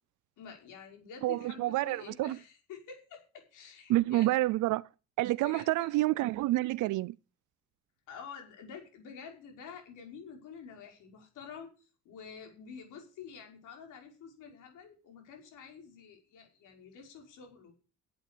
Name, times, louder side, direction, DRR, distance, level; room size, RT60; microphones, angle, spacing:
voice 1, 0.4-4.4 5.4-5.9 8.1-17.7, left 6 dB, 90° left, 5.6 m, -49 dB
voice 2, 1.2-2.4 3.9-4.9 5.2-7.1, right 17 dB, 80° right, 0.5 m, -28 dB
11.5 x 8.6 x 6.8 m
cardioid pair, 90°, 30 cm